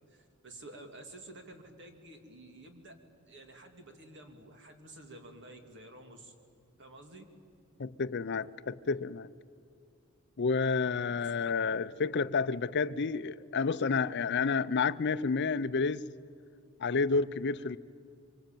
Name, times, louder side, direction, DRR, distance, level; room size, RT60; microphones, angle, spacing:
voice 1, 0.1-2.9 3.3-6.3 6.8-7.2 11.2-11.3, right 2 dB, 55° right, 2.9 m, -51 dB
voice 2, 7.8-9.3 10.4-16.1 16.8-17.8, left 4 dB, 50° left, 0.6 m, -30 dB
25.0 x 24.0 x 9.1 m
head